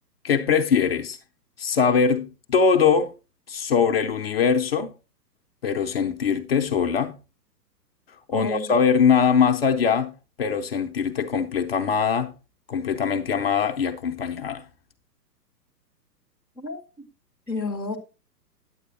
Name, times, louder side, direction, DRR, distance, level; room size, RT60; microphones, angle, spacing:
voice 1, 0.2-1.2 1.6-3.1 3.5-4.9 5.6-7.1 8.3-12.3 12.7-14.6, left 6 dB, 35° left, 0.7 m, -22 dB
voice 2, 8.3-8.8 16.6-16.8 17.5-18.0, left 3 dB, ahead, 0.7 m, -31 dB
9.3 x 8.0 x 2.9 m
figure-of-eight pair, 120°, 50 cm